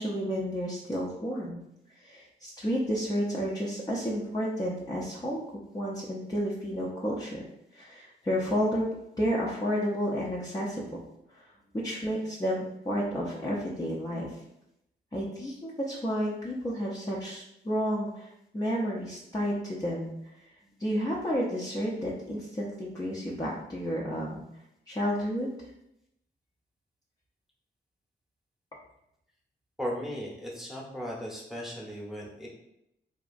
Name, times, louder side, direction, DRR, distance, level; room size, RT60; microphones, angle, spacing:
voice 1, 0.0-1.6 1.9-5.4 5.7-7.4 7.7-8.8 9.2-11.0 11.3-14.4 15.1-20.4 20.8-24.4 24.9-25.5, equal, 20° left, -6 dB, 0.5 m, -31 dB
voice 2, 29.8-32.5, equal, ahead, -3 dB, 0.9 m, -36 dB
2.8 x 2.4 x 2.5 m, 0.81 s
cardioid pair, 55°, 20 cm